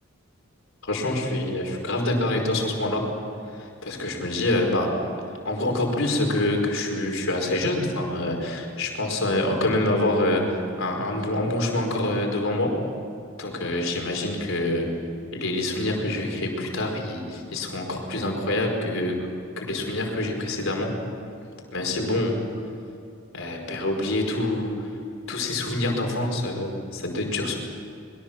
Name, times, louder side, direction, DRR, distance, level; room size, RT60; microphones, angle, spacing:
voice 1, 0.8-3.1 3.5-5.0 5.5-12.8 13.4-14.9 15.3-19.2 19.6-21.0 21.7-22.4 23.3-24.9 25.3-27.6, left 1 dB, 65° left, 2 dB, 5.0 m, -26 dB
25.0 x 22.5 x 7.4 m, 2.7 s
head